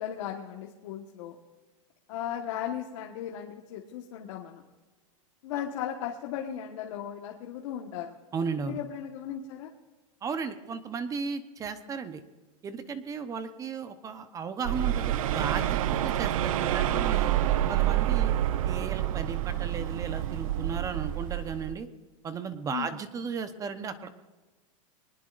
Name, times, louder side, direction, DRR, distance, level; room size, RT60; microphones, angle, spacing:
voice 1, 0.0-1.4 2.1-4.6 5.4-8.1 8.6-9.7 22.7-22.9, left 10 dB, 60° left, 0 dB, 1.5 m, -36 dB
voice 2, 8.3-8.8 10.2-12.2 12.6-17.3 17.7-18.3 18.6-21.9 22.2-24.1, right 5 dB, 20° right, 10 dB, 1.0 m, -35 dB
sound 1, 14.6-21.7, right 12 dB, 75° right, 0.7 m, -28 dB
23.0 x 19.5 x 2.6 m, 1.3 s
supercardioid pair, 150°, 18 cm